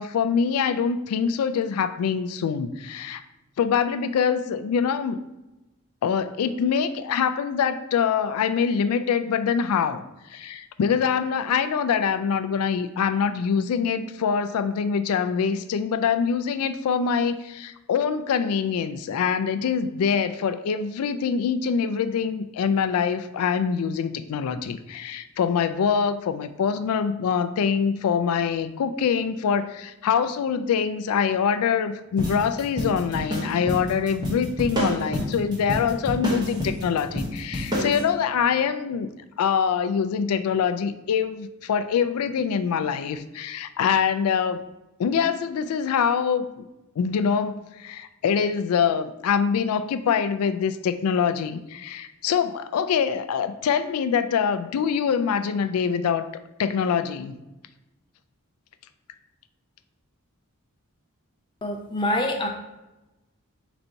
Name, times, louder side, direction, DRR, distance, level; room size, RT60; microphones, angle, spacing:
voice 1, 0.0-3.2 3.6-5.2 6.0-10.0 10.3-39.1 39.4-44.6 45.0-46.7 47.0-56.3 56.6-57.3, left 6 dB, 80° left, 12 dB, 0.3 m, -24 dB
sound 1, 32.2-38.0, equal, 20° right, 0.8 m, -29 dB
voice 2, 61.6-62.5, left 1 dB, 20° left, 2 dB, 0.5 m, -25 dB
4.0 x 2.6 x 4.4 m, 1.0 s
head